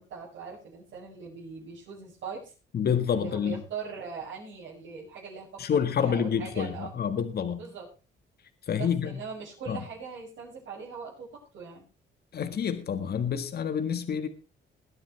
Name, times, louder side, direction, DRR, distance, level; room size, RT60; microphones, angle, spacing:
voice 1, 0.0-2.5 3.1-5.6 5.9-6.9 7.6-7.9 8.8-11.9, right 5 dB, 75° right, -7 dB, 6.8 m, -41 dB
voice 2, 2.7-3.6 5.6-7.6 8.7-9.1 9.7-9.8 12.3-14.3, left 7 dB, 55° left, 9 dB, 1.7 m, -28 dB
21.0 x 10.0 x 3.4 m, 0.31 s
cardioid pair, 90°, 20 cm